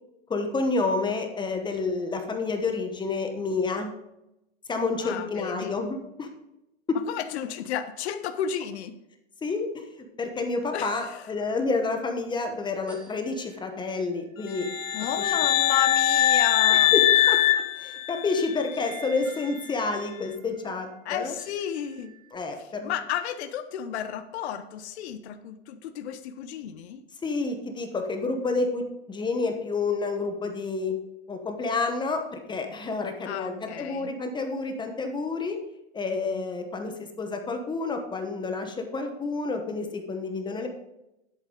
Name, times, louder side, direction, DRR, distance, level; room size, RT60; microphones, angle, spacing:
voice 1, 0.3-3.9 4.7-6.3 6.9-7.0 9.4-14.7 15.2-15.3 16.7-21.3 22.3-22.9 27.2-28.8 29.1-30.9 31.3-35.6 35.9-40.7, left 3 dB, 10° left, 5 dB, 1.1 m, -29 dB
voice 2, 5.0-5.8 7.1-8.9 10.7-11.2 14.9-16.9 21.0-22.1 22.6-27.0 33.2-34.1, left 9 dB, 60° left, 10 dB, 1.0 m, -33 dB
sound 1, 11.1-22.3, right 6 dB, 5° right, 2.3 m, -50 dB
sound 2, 14.6-18.6, left 12 dB, 85° left, 0.9 m, -22 dB
10.5 x 8.4 x 3.8 m, 0.89 s
hypercardioid pair, 130°, 38 cm